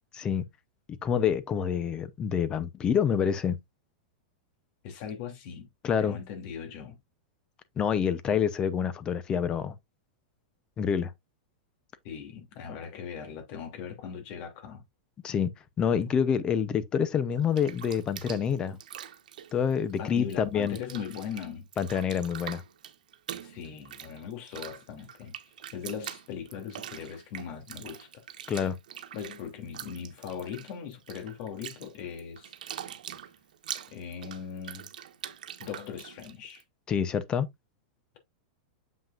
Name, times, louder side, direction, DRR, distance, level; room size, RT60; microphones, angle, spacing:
voice 1, 0.1-0.4 0.9-3.6 5.8-6.2 7.8-9.7 10.8-11.1 15.2-15.5 15.8-18.8 19.5-20.8 21.8-22.6 28.5-28.8 36.9-37.5, left 7 dB, 20° left, 0.7 m, -27 dB
voice 2, 4.8-5.7 6.0-7.0 12.0-14.8 20.0-21.7 23.4-25.3 25.7-28.3 29.1-32.5 33.9-34.9 35.6-36.6, left 7 dB, 45° left, 2.8 m, -39 dB
Bathtub (filling or washing), 17.3-20.4 20.6-36.6, right 10 dB, 85° right, 1.2 m, -44 dB
7.3 x 5.7 x 2.5 m
supercardioid pair, 160°, 4 cm